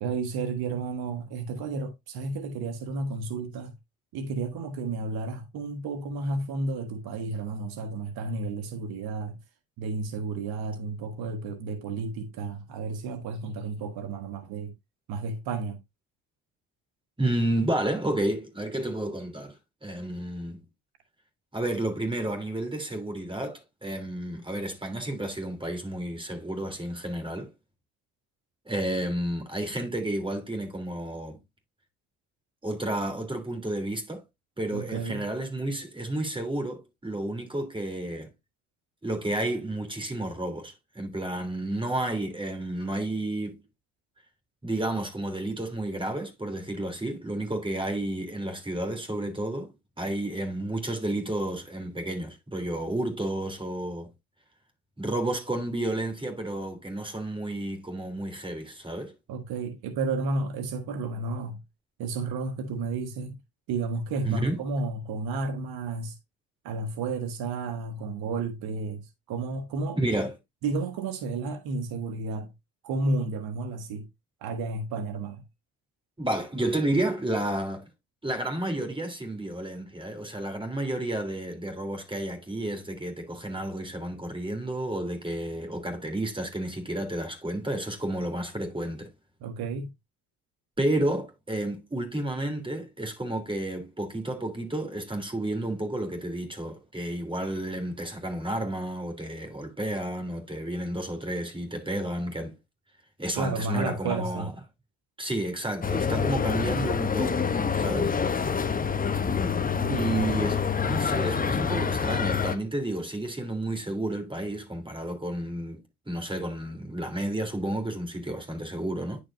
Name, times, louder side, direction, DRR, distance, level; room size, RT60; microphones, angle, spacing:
voice 1, 0.0-3.7 4.1-9.4 9.8-14.7 15.1-15.8 34.7-35.2 59.3-61.6 62.0-63.4 63.7-66.2 66.6-70.0 70.6-72.5 72.8-74.1 74.4-75.4 89.4-89.9 103.3-104.5 109.7-110.4, right 3 dB, 70° right, 1.5 m, -32 dB
voice 2, 17.2-20.6 21.5-27.5 28.6-31.4 32.6-34.2 34.6-38.3 39.0-43.6 44.6-54.1 55.0-59.1 64.2-64.6 69.9-70.3 76.2-77.8 78.2-89.1 90.8-102.5 103.2-104.5 105.2-107.4 107.8-108.1 109.9-115.8 116.1-119.2, right 1 dB, 15° right, 3.3 m, -31 dB
sound 1, 105.8-112.6, left 6 dB, 20° left, 0.9 m, -26 dB
10.0 x 5.1 x 2.6 m
supercardioid pair, 70°, 39 cm